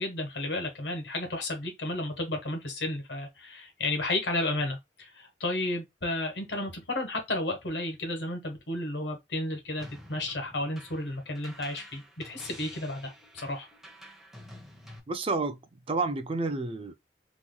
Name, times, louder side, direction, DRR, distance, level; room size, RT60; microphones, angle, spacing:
voice 1, 0.0-13.7, left 2 dB, 80° left, 1.3 m, -32 dB
sound 1, 9.8-15.0, equal, ahead, 0.9 m, -49 dB
voice 2, 15.1-16.9, right 3 dB, 30° right, 0.4 m, -30 dB
3.8 x 2.9 x 2.2 m
head